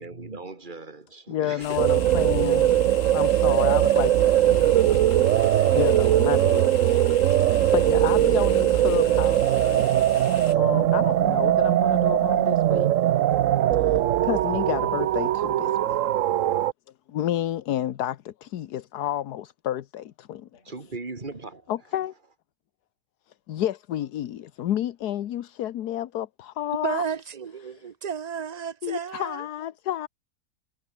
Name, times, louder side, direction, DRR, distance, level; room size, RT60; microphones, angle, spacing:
voice 1, 0.0-2.6 20.5-21.7, right 3 dB, 30° right, 2.9 m, -39 dB
voice 2, 1.3-2.7 3.1-4.1 5.3-6.8 7.4-12.9 13.8-16.0 17.1-20.6 21.7-22.1 23.5-27.1 27.7-27.8 28.8-30.1, left 12 dB, 80° left, 1.4 m, -30 dB
sound 1, 1.6-10.5, left 8 dB, 55° left, 1.4 m, -41 dB
sound 2, 1.8-16.7, right 12 dB, 65° right, 0.9 m, -21 dB
voice 3, 26.7-29.5, right 7 dB, 90° right, 0.3 m, -32 dB
omnidirectional pair, 1.7 m